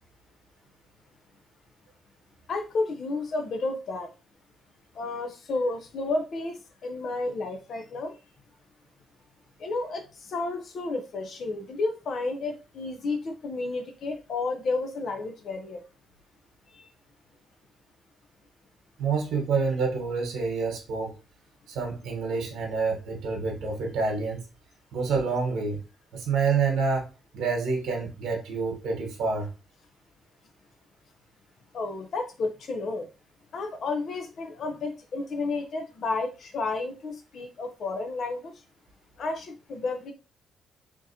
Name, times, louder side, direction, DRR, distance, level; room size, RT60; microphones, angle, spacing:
voice 1, 2.5-4.1 4.9-8.1 9.6-15.8 16.7-16.9 31.7-33.1 33.5-38.6 39.2-40.1, left 3 dB, 60° left, 0.6 m, -31 dB
voice 2, 19.0-21.2 21.7-24.4 24.9-25.8 26.1-27.1 27.3-29.5, right 4 dB, 85° right, 1.1 m, -27 dB
3.6 x 2.8 x 2.7 m
cardioid pair, 90°, 0 cm